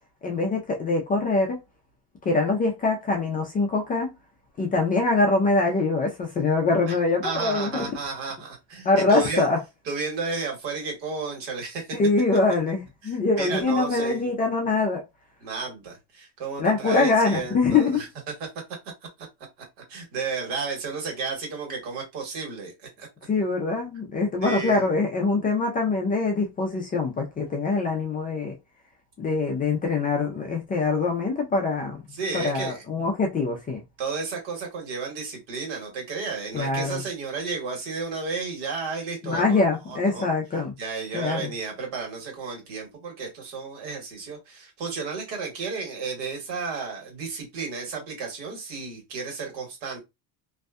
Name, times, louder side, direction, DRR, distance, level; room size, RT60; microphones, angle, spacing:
voice 1, 0.2-1.6 2.3-4.1 4.6-7.8 8.8-9.6 11.9-15.0 16.6-18.0 23.3-28.5 29.2-32.0 32.3-33.8 36.5-37.0 39.2-40.7 41.1-41.5, left 3 dB, 20° left, 0.3 m, -24 dB
voice 2, 7.2-9.5 9.9-12.0 13.0-14.2 15.4-18.5 19.9-23.1 24.4-24.9 32.1-32.8 34.0-40.3 40.8-50.0, right 4 dB, 75° right, 1.5 m, -33 dB
2.6 x 2.1 x 2.4 m
cardioid pair, 145°, 42 cm